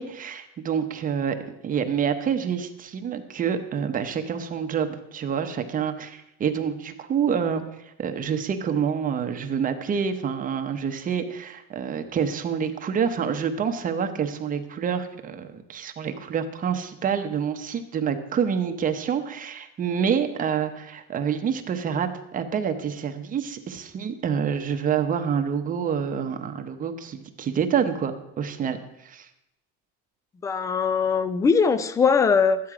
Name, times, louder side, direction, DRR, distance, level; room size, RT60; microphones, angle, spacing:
voice 1, 0.0-1.4 1.6-7.6 8.0-29.3, right 7 dB, 25° right, 7 dB, 0.8 m, -27 dB
voice 2, 30.4-32.6, left 5 dB, 10° left, 14 dB, 0.3 m, -21 dB
12.5 x 9.1 x 4.8 m, 0.83 s
cardioid pair, 160°, 32 cm